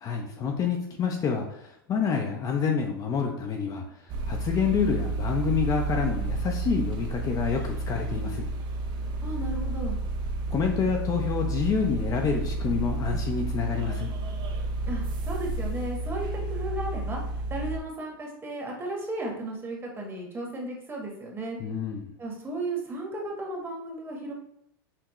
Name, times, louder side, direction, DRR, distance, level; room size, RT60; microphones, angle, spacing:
voice 1, 0.0-3.8 4.3-8.5 10.5-14.1 21.6-22.1, left 6 dB, 30° left, 2 dB, 0.6 m, -28 dB
sound 1, 4.1-17.8, right 2 dB, 40° right, 0.6 m, -31 dB
voice 2, 9.2-10.0 14.9-17.2 17.5-21.6 22.2-24.3, right 2 dB, 20° right, 0 dB, 1.2 m, -34 dB
5.9 x 2.3 x 3.0 m, 0.75 s
hypercardioid pair, 110°, 12 cm